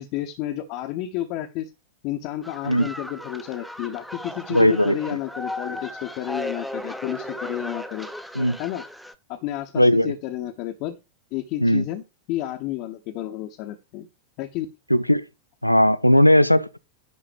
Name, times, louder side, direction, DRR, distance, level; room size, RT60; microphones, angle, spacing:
voice 1, 0.0-1.7 2.0-8.1 8.6-8.8 9.3-11.0 11.3-12.0 12.3-14.1 14.4-14.7, left 13 dB, 45° left, 1.0 m, -31 dB
sound 1, 2.4-9.1, left 1 dB, ahead, 0.9 m, -36 dB
voice 2, 4.5-5.0 8.4-8.6 9.8-10.1 11.6-11.8 14.9-15.2 15.6-16.8, left 1 dB, 90° left, 0.6 m, -17 dB
11.0 x 3.9 x 6.8 m
figure-of-eight pair, 90°, 0 cm